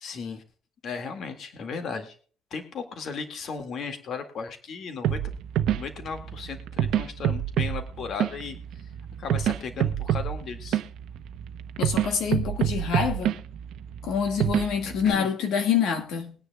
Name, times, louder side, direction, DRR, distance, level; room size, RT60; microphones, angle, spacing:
voice 1, 0.0-0.4 0.8-2.1 2.5-5.2 5.7-8.6 9.2-10.8 14.8-15.3, left 5 dB, 45° left, 1.9 m, -36 dB
sound 1, 5.0-15.1, right 10 dB, 65° right, 0.8 m, -28 dB
voice 2, 11.8-13.4 14.0-16.3, left 7 dB, 70° left, 1.7 m, -26 dB
21.5 x 9.8 x 2.3 m
cardioid pair, 170°, 0 cm